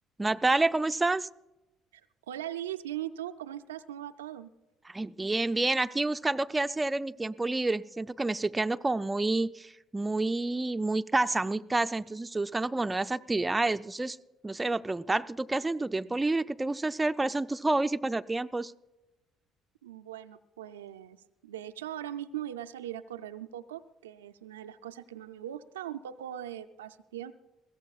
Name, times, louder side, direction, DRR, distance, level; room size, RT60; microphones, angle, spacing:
voice 1, 0.2-1.3 4.9-14.2 14.4-18.7, right 2 dB, 20° right, 11 dB, 0.4 m, -29 dB
voice 2, 2.3-4.5 19.8-27.3, right 11 dB, 85° right, 9 dB, 0.4 m, -40 dB
21.5 x 16.0 x 2.4 m, 0.99 s
hypercardioid pair, 55°, 0 cm